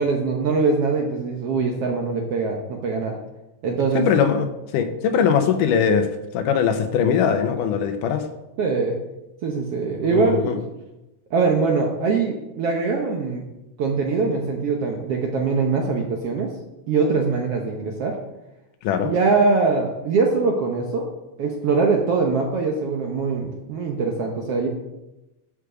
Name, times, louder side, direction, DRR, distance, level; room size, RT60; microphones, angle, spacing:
voice 1, 0.0-3.1 3.6-4.1 8.6-9.0 9.4-10.6 11.3-13.4 13.8-16.5 16.9-18.2 19.0-21.0 21.4-24.7, right 4 dB, 65° right, 1 dB, 1.5 m, -22 dB
voice 2, 3.9-4.5 4.7-6.1 6.3-8.2 10.0-10.6 18.8-19.1, left 7 dB, 80° left, 7 dB, 2.4 m, -20 dB
13.0 x 5.0 x 5.0 m, 0.96 s
omnidirectional pair, 3.8 m